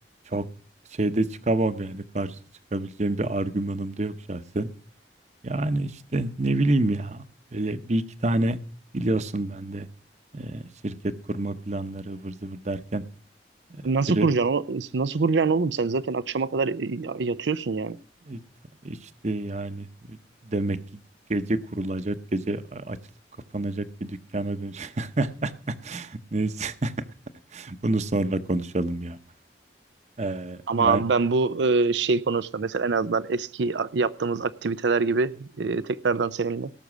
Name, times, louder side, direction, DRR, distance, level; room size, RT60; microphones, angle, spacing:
voice 1, 0.9-2.4 2.7-4.7 5.4-7.2 7.5-8.6 8.9-9.9 10.3-13.0 13.7-13.8 14.1-14.3 18.3-18.4 18.8-20.2 20.4-20.8 21.3-23.0 23.5-26.9 27.5-29.2 30.2-31.0, right 2 dB, 40° right, 12 dB, 0.8 m, -28 dB
voice 2, 13.8-18.0 30.7-36.7, right 4 dB, 90° right, 14 dB, 0.5 m, -25 dB
18.0 x 6.7 x 6.1 m, 0.42 s
head